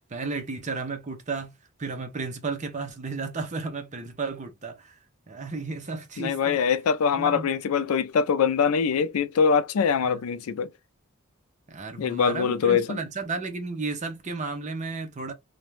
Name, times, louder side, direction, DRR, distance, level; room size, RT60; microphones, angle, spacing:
voice 1, 0.1-1.5 1.8-5.0 5.3-6.6 7.1-7.5 10.0-10.2 11.7-15.3, right 4 dB, 35° right, 0.6 m, -33 dB
voice 2, 6.2-10.7 12.0-13.0, left 6 dB, 90° left, 0.4 m, -23 dB
2.5 x 2.2 x 3.0 m
head